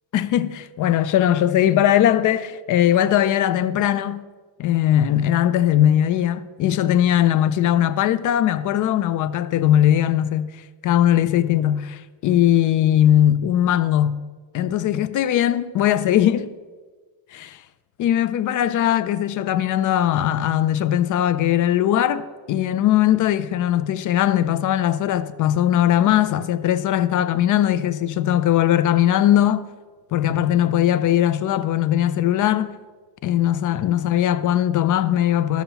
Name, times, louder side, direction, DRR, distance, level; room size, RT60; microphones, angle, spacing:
voice 1, 0.1-4.3 4.6-10.5 10.8-11.8 12.2-14.2 14.5-16.5 17.3-17.6 18.0-29.6 30.1-32.7 33.2-35.6, left 11 dB, 45° left, 0.4 m, -19 dB
12.5 x 6.9 x 2.9 m
cardioid pair, 120°, 46 cm